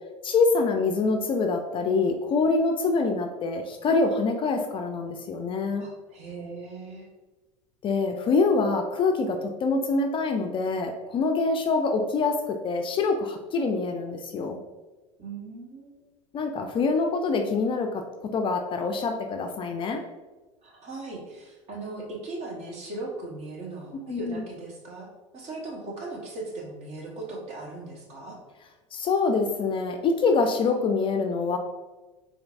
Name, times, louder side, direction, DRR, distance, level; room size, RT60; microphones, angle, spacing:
voice 1, 0.2-5.8 7.8-14.6 16.3-18.0 18.3-20.0 24.1-24.4 28.9-31.6, left 4 dB, 30° left, 4 dB, 0.4 m, -25 dB
voice 2, 5.8-7.1 15.2-16.0 20.6-28.4, right 2 dB, 40° right, -1 dB, 1.1 m, -38 dB
4.3 x 2.6 x 2.5 m, 1.2 s
hypercardioid pair, 80°, 16 cm